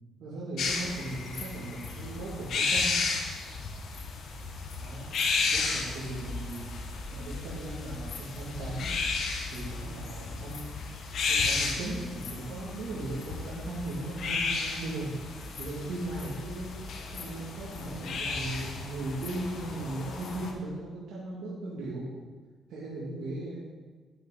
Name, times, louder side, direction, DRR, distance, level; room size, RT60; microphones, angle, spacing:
voice 1, 0.2-3.0 4.8-5.1 5.5-6.7 7.1-8.9 9.5-10.7 11.2-22.2 22.7-23.6, right 2 dB, 75° right, -7 dB, 1.9 m, -38 dB
sound 1, 0.6-20.5, left 4 dB, 65° left, 1.3 m, -33 dB
9.6 x 7.7 x 3.8 m, 1.4 s
cardioid pair, 90°, 0 cm